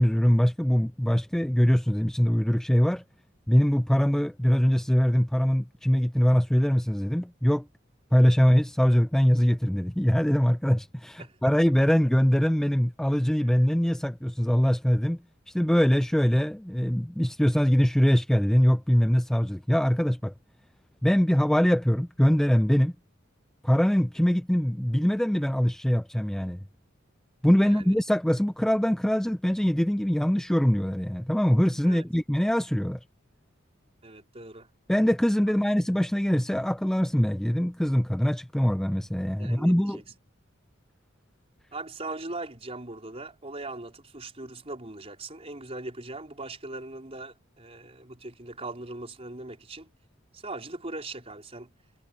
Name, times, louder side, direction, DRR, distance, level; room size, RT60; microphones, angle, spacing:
voice 1, 0.0-3.0 3.5-7.7 8.1-15.2 15.5-20.3 21.0-22.9 23.6-26.6 27.4-33.0 34.9-40.0, equal, ahead, 0.3 m, -23 dB
voice 2, 27.6-27.9 31.8-32.0 34.0-34.7 39.4-40.0 41.7-49.9 50.3-51.7, right 2 dB, 30° right, 4.4 m, -40 dB
head